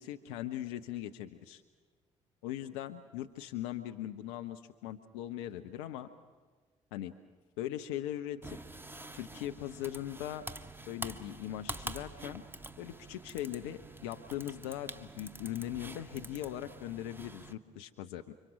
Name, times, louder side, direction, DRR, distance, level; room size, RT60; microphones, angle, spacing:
voice 1, 0.0-1.6 2.4-6.1 6.9-7.1 7.6-8.6 9.1-10.4 10.9-12.4 12.8-18.3, left 12 dB, 70° left, 7 dB, 0.8 m, -40 dB
sound 1, 8.4-17.5, right 2 dB, 15° right, 1.6 m, -46 dB
30.0 x 25.0 x 6.1 m, 1.4 s
figure-of-eight pair, 45°, 16 cm